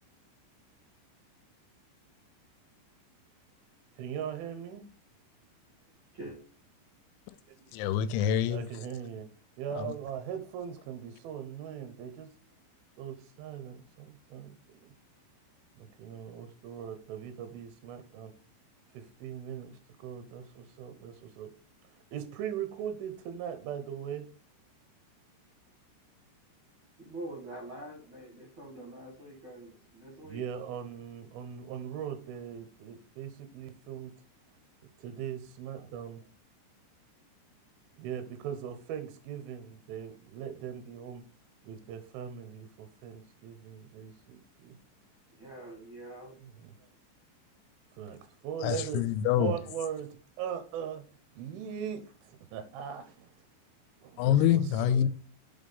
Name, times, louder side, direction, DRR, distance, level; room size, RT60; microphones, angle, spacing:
voice 1, 4.0-4.8 7.6-7.7 8.4-9.3 9.6-12.3 13.0-14.8 15.8-18.3 18.9-21.5 22.1-24.3 30.2-34.1 35.0-36.2 38.0-41.2 41.6-44.8 46.4-46.7 48.0-49.1 49.3-51.1 51.4-53.3 54.0-55.1, right 9 dB, 80° right, 2.1 m, -40 dB
voice 2, 7.7-8.7 9.8-9.9 48.6-49.5 54.2-55.1, left 10 dB, 85° left, 3.0 m, -26 dB
voice 3, 27.0-30.4 45.4-46.4, right 1 dB, 60° right, 1.3 m, -45 dB
7.1 x 3.8 x 5.4 m
omnidirectional pair, 5.4 m